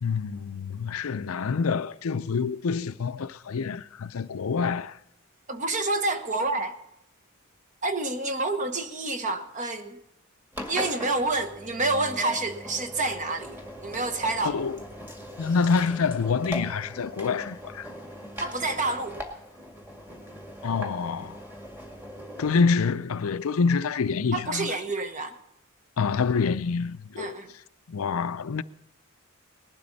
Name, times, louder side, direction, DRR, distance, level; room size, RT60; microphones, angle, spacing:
voice 1, 0.0-5.0 14.4-14.8 15.4-17.9 20.6-21.4 22.4-24.7 26.0-27.4 27.9-28.6, left 5 dB, 75° left, 0.5 m, -27 dB
voice 2, 5.5-6.7 7.8-10.0 10.7-14.6 18.4-19.2 24.3-25.4 27.2-27.5, right 2 dB, 35° right, 1.1 m, -28 dB
Engine, 10.5-22.6, equal, 10° right, 2.0 m, -40 dB
19.0 x 12.0 x 4.1 m
head